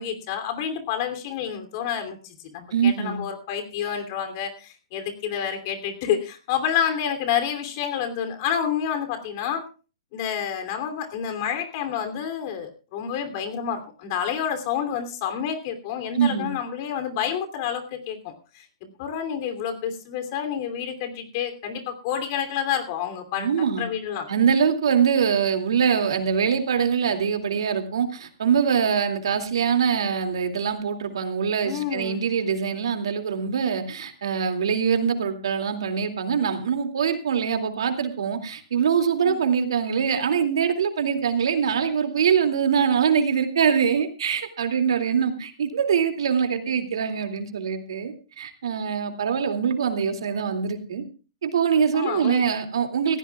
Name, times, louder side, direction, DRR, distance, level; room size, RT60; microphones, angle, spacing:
voice 1, 0.0-9.6 10.1-23.5 23.8-24.3 31.6-32.2 39.2-39.4 51.9-52.4, left 8 dB, 40° left, 7 dB, 2.8 m, -29 dB
voice 2, 2.7-3.2 16.1-16.5 23.4-23.9 24.3-51.0 51.4-53.2, right 7 dB, 80° right, 5 dB, 2.4 m, -23 dB
19.0 x 15.5 x 2.3 m, 0.35 s
hypercardioid pair, 155°, 3 cm